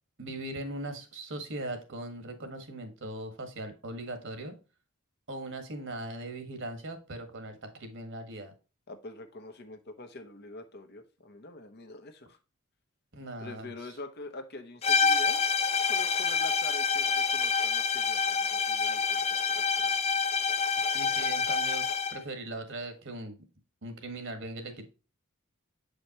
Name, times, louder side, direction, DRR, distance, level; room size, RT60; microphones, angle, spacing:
voice 1, 0.2-4.5 5.3-8.5 13.1-13.7 20.9-23.4 23.8-24.9, right 1 dB, 60° right, 7 dB, 1.6 m, -39 dB
voice 2, 8.9-12.4 13.4-15.4 15.9-20.1, left 2 dB, 50° left, 7 dB, 1.0 m, -45 dB
sound 1, 14.8-22.2, left 5 dB, 30° left, 0.4 m, -27 dB
7.7 x 5.1 x 2.9 m, 0.31 s
head